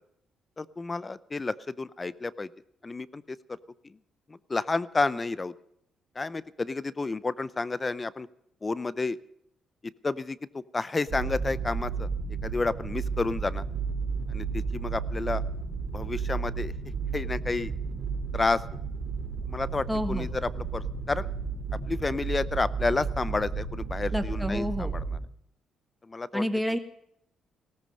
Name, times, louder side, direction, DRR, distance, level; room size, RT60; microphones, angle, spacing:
voice 1, 0.6-2.5 2.8-3.6 3.8-4.0 4.3-5.5 6.2-8.3 8.6-9.2 10.0-12.1 12.4-13.6 14.3-15.4 15.9-16.7 17.1-17.7 18.3-18.6 19.5-21.3 21.9-25.0 26.0-26.4, left 3 dB, 25° left, 18 dB, 0.5 m, -30 dB
sound 1, 11.1-25.2, right 5 dB, 65° right, 5.0 m, -33 dB
voice 2, 19.9-20.3 24.1-24.9 26.3-26.8, equal, ahead, 6 dB, 1.6 m, -29 dB
17.5 x 14.0 x 5.4 m, 0.74 s
cardioid pair, 90°, 0 cm